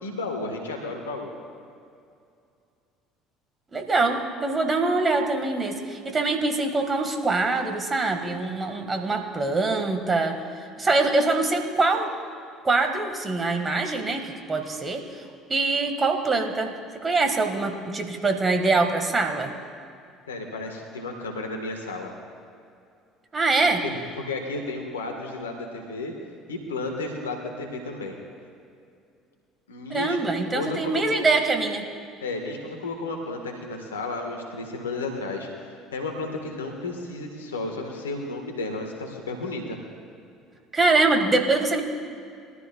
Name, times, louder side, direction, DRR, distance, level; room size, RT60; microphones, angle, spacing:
voice 1, 0.0-1.3 20.3-22.1 23.8-26.1 26.5-28.2 29.7-30.2 30.5-31.0 32.2-39.8, left 2 dB, 85° left, 2 dB, 1.5 m, -33 dB
voice 2, 3.7-10.4 10.8-12.1 12.6-15.1 15.5-16.7 17.0-19.5 23.3-23.8 29.9-31.9 40.7-41.8, right 3 dB, 30° right, 5 dB, 1.8 m, -24 dB
21.0 x 13.0 x 2.4 m, 2.4 s
hypercardioid pair, 65°, 0 cm